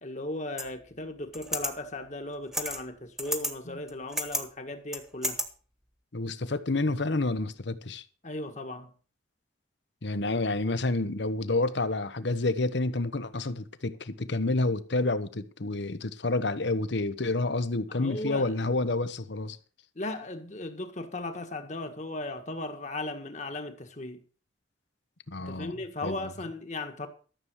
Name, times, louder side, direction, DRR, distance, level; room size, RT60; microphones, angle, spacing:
voice 1, 0.0-5.4 8.2-8.9 17.9-18.5 19.9-24.2 25.4-27.1, left 2 dB, 40° left, 1.7 m, -37 dB
sound 1, 0.6-0.7 1.3-1.7 2.5-2.8 3.2-3.5 3.9-4.4 4.9-5.4, equal, ahead, 1.3 m, -31 dB
voice 2, 6.1-8.0 10.0-19.6 25.3-25.8 26.0-26.3, left 2 dB, 70° left, 1.0 m, -29 dB
13.5 x 7.3 x 6.4 m
head